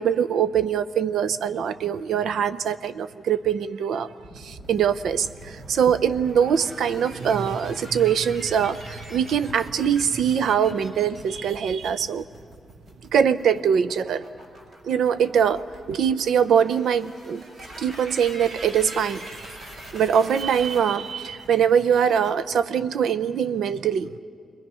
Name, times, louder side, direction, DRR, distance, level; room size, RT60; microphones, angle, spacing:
voice 1, 0.0-4.1 4.4-12.2 13.1-14.2 14.8-17.4 17.8-19.3 19.9-24.1, right 8 dB, 85° right, 13 dB, 0.6 m, -23 dB
sound 1, 4.2-22.3, right 1 dB, 50° right, 4.6 m, -43 dB
27.0 x 22.0 x 5.6 m, 2.2 s
wide cardioid pair, 125°, 0 cm